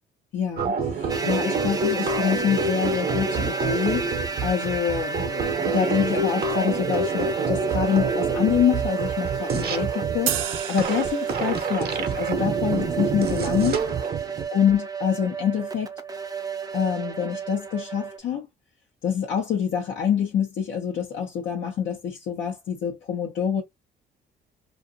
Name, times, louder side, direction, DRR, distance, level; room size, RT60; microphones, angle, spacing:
voice 1, 0.3-13.9 14.5-15.9 16.7-18.5 19.0-23.6, left 8 dB, 70° left, 0.8 m, -26 dB
sound 1, 0.6-14.5, right 4 dB, 50° right, 0.8 m, -27 dB
sound 2, 1.1-18.2, right 5 dB, 20° right, 0.5 m, -32 dB
sound 3, 10.3-11.9, right 11 dB, 80° right, 0.5 m, -31 dB
2.5 x 2.5 x 2.6 m
cardioid pair, 90°, 20 cm